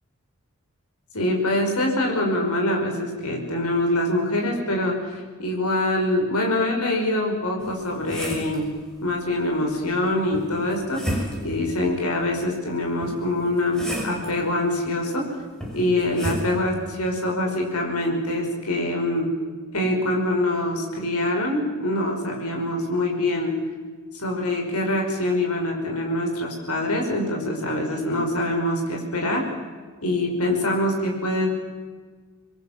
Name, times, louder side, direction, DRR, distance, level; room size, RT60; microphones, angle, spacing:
voice 1, 1.1-8.7 9.0-15.3 15.7-19.3 19.7-23.5 24.1-29.4 30.0-31.5, left 1 dB, 90° left, 0 dB, 5.5 m, -24 dB
sound 1, 7.6-8.6 10.3-11.6 13.0-14.3 15.6-16.5, equal, 5° left, 6.3 m, -31 dB
27.5 x 22.0 x 7.4 m, 1.5 s
head